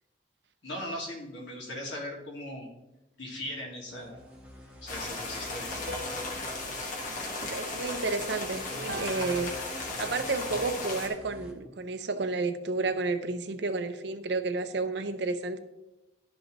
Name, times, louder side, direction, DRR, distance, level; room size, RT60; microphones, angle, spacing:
voice 1, 0.6-2.7 3.2-4.2 4.8-5.7, left 1 dB, 70° left, -1 dB, 2.1 m, -38 dB
sound 1, 3.9-11.5, equal, 5° right, 1.0 m, -48 dB
sound 2, 4.9-11.1, left 2 dB, 45° left, 1.4 m, -36 dB
sound 3, 5.9-8.3 8.9-10.4, right 1 dB, 85° right, 1.0 m, -45 dB
voice 2, 7.5-9.5 10.0-15.6, right 3 dB, 60° right, 9 dB, 0.6 m, -31 dB
12.0 x 5.2 x 3.0 m, 0.96 s
head